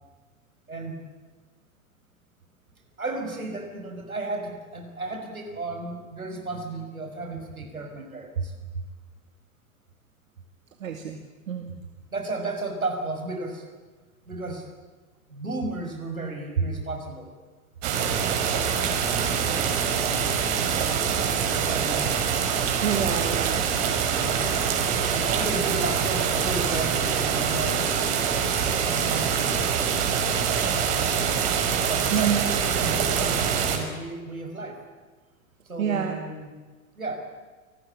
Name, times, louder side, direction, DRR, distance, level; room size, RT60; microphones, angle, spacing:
voice 1, 0.7-1.0 3.0-8.5 12.1-13.6 14.3-14.7 15.3-17.3 21.5-22.1 24.0-24.4 25.1-29.9 30.9-31.2 31.9-34.8 35.7-36.5 37.0-37.2, right 2 dB, 90° right, 4 dB, 5.9 m, -34 dB
voice 2, 10.8-11.2 11.5-11.8 22.8-23.7 32.1-32.5 35.8-36.2, right 7 dB, 70° right, 6 dB, 2.3 m, -27 dB
sound 1, 17.8-33.8, right 7 dB, 50° right, 5.5 m, -25 dB
29.0 x 19.5 x 8.7 m, 1.3 s
figure-of-eight pair, 95°, 41 cm